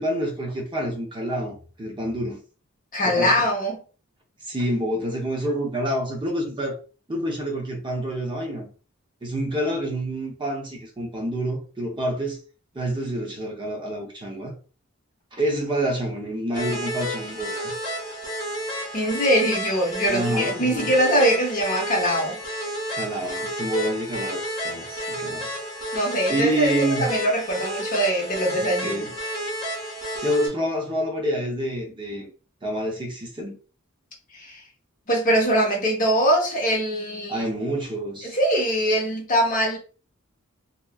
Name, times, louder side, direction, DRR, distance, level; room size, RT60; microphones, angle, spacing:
voice 1, 0.0-2.4 3.0-3.4 4.4-6.8 7.1-8.7 9.2-12.4 12.7-14.6 15.3-17.7 20.1-20.9 22.9-25.5 26.3-27.1 28.6-29.1 30.2-32.3 32.6-33.6 37.3-38.4, right 1 dB, 25° right, 0.6 m, -27 dB
voice 2, 2.9-3.8 18.9-22.4 25.9-26.7 27.0-29.0 34.3-34.6 35.1-37.4 38.2-39.8, equal, 40° left, 0.8 m, -22 dB
sound 1, 16.5-30.5, equal, 20° left, 1.1 m, -31 dB
2.8 x 2.3 x 2.3 m
head